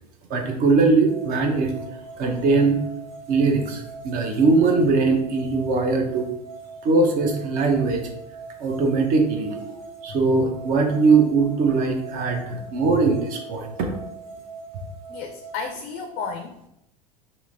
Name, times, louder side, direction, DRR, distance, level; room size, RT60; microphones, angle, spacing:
voice 1, 0.3-1.7 2.2-2.8 3.3-6.3 6.8-8.0 8.6-9.8 10.0-13.9, right 4 dB, 45° right, 4 dB, 0.6 m, -21 dB
sound 1, 1.1-15.7, right 4 dB, 80° right, 0.9 m, -41 dB
voice 2, 12.5-13.0 15.1-16.7, left 5 dB, 45° left, 5 dB, 0.4 m, -34 dB
2.8 x 2.6 x 2.5 m, 0.83 s
hypercardioid pair, 80°, 20 cm